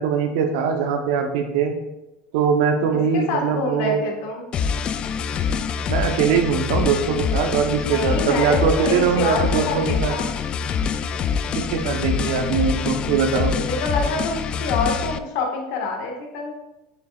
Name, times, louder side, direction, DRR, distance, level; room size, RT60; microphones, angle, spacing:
voice 1, 0.0-1.7 2.3-4.0 5.9-10.2 11.5-13.6, right 6 dB, 75° right, 5 dB, 0.9 m, -21 dB
voice 2, 3.1-4.5 7.8-10.3 13.3-16.5, left 3 dB, 65° left, 1 dB, 1.5 m, -27 dB
sound 1, 4.5-15.2, left 6 dB, 35° left, 0.3 m, -25 dB
6.8 x 6.6 x 2.4 m, 0.98 s
supercardioid pair, 120°, 3 cm